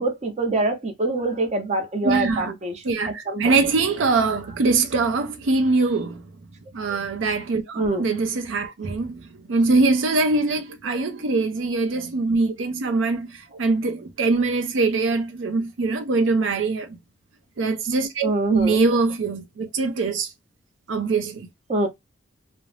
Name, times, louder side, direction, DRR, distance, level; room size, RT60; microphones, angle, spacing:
voice 1, 0.0-2.8 3.3-3.6 6.9-7.0 7.8-8.0 8.8-8.9 18.2-18.8 21.7-21.9, right 2 dB, 35° right, 0.6 m, -24 dB
voice 2, 2.0-2.5 2.8-6.2 6.7-17.0 17.6-20.3 20.9-21.5, right 3 dB, 85° right, 0.5 m, -23 dB
2.4 x 2.0 x 3.0 m
head